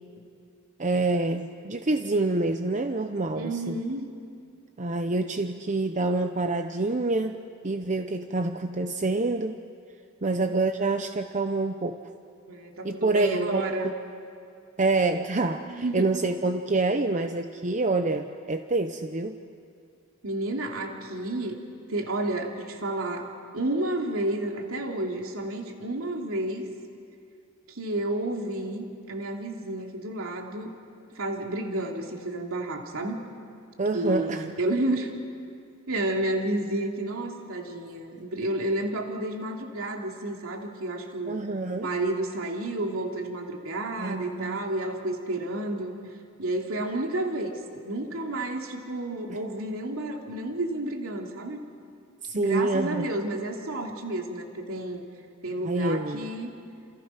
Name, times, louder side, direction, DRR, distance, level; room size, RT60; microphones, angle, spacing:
voice 1, 0.8-3.8 4.8-7.4 7.6-9.6 10.2-12.0 12.8-13.9 14.8-19.4 33.8-34.5 41.3-41.9 44.0-44.6 49.3-49.4 52.2-53.0 55.6-56.3, right 2 dB, 35° right, 6 dB, 0.8 m, -27 dB
voice 2, 3.4-4.1 10.2-10.4 12.5-13.9 15.7-16.0 20.2-21.6 21.9-26.7 27.7-30.7 31.1-33.2 33.9-35.1 35.9-41.4 41.8-45.9 46.4-51.6 52.3-55.0 55.4-56.5, right 1 dB, 80° right, 1 dB, 2.9 m, -31 dB
30.0 x 28.0 x 5.8 m, 2.4 s
head